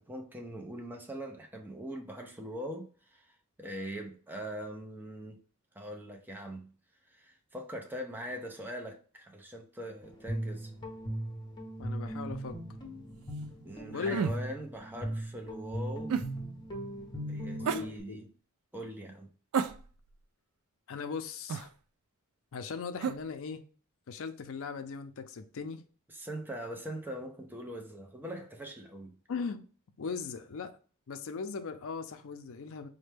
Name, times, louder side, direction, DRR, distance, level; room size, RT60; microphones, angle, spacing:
voice 1, 0.0-5.4 5.7-6.7 7.1-10.7 13.6-16.2 17.3-18.3 18.7-19.3 26.1-29.2, equal, 10° right, 0.5 m, -42 dB
Guitar, 10.0-18.0, right 1 dB, 20° left, 0.8 m, -38 dB
voice 2, 11.8-12.6 13.9-14.2 17.6-18.2 20.9-21.7 22.5-23.6 24.1-25.8 29.3-29.6 30.0-30.8 31.1-32.9, left 5 dB, 65° left, 0.4 m, -38 dB
sound 1, 14.1-14.4 16.1-16.3 17.6-17.9 19.5-20.1 21.5-21.7 23.0-23.2, right 6 dB, 70° right, 0.3 m, -31 dB
4.2 x 2.1 x 3.3 m
head